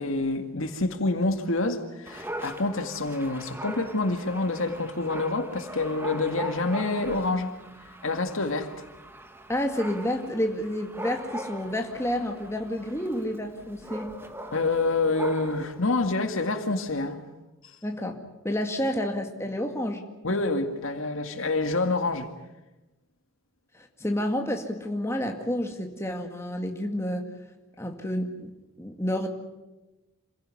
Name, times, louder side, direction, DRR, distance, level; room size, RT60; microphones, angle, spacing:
voice 1, 0.0-7.5 8.0-8.9 14.5-17.2 20.2-22.3, left 2 dB, 70° left, 2.1 m, -27 dB
Dog, 2.1-15.8, right 1 dB, 10° right, 1.6 m, -40 dB
voice 2, 9.5-14.1 17.8-20.0 20.3-20.5 23.7-27.3 27.8-28.5 28.8-29.3, left 1 dB, 10° left, 2.0 m, -30 dB
27.0 x 16.0 x 9.7 m
head